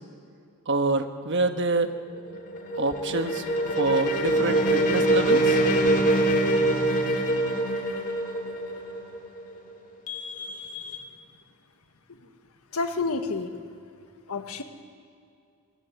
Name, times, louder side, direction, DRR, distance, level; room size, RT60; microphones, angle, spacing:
voice 1, 0.7-1.9 2.8-3.4 3.8-5.6, right 2 dB, 55° right, 7 dB, 1.4 m, -26 dB
sound 1, 2.0-9.7, right 1 dB, 40° left, 2.4 m, -24 dB
voice 2, 10.1-11.1 12.7-13.5 14.3-14.6, left 4 dB, 75° left, 7 dB, 1.6 m, -31 dB
23.0 x 19.0 x 8.4 m, 2.4 s
head